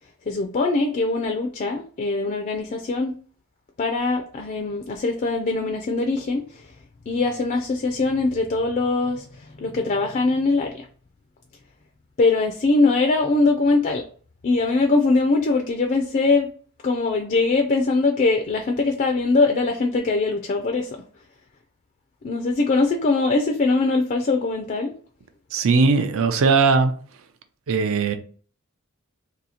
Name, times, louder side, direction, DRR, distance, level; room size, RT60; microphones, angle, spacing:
voice 1, 0.3-3.1 3.8-6.7 7.1-10.9 12.2-14.0 14.4-16.5 16.8-21.0 22.2-24.9, left 3 dB, 35° left, 0.4 m, -22 dB
voice 2, 25.5-26.9 27.7-28.1, right 4 dB, 65° right, 0.5 m, -19 dB
2.8 x 2.7 x 4.1 m
head